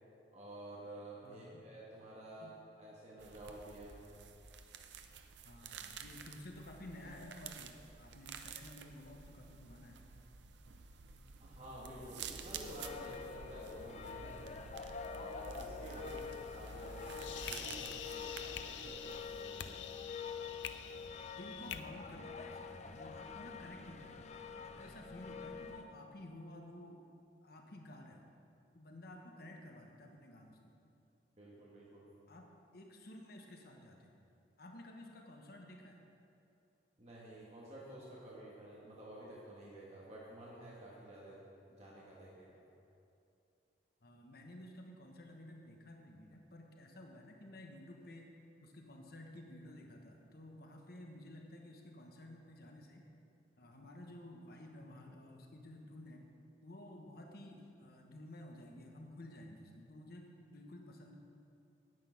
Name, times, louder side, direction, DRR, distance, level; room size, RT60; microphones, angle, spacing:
voice 1, 0.3-4.0 11.4-14.5 15.1-20.1 31.4-32.1 37.0-41.4 41.7-42.6, right 1 dB, 35° right, -6 dB, 1.8 m, -51 dB
voice 2, 1.2-1.6 2.4-2.5 5.4-10.0 15.8-16.5 21.2-24.2 24.6-27.0 27.4-28.3 28.7-30.8 32.3-34.1 34.6-36.0 44.0-48.3 48.6-53.0 53.6-56.3 56.6-61.2, left 1 dB, 55° left, 1 dB, 1.2 m, -53 dB
sound 1, 3.2-19.4, right 6 dB, 75° right, 0.6 m, -51 dB
sound 2, 12.6-25.9, left 5 dB, 40° left, 0.6 m, -47 dB
sound 3, 16.8-21.8, left 9 dB, 85° left, 0.5 m, -47 dB
9.6 x 9.2 x 5.9 m, 2.6 s
head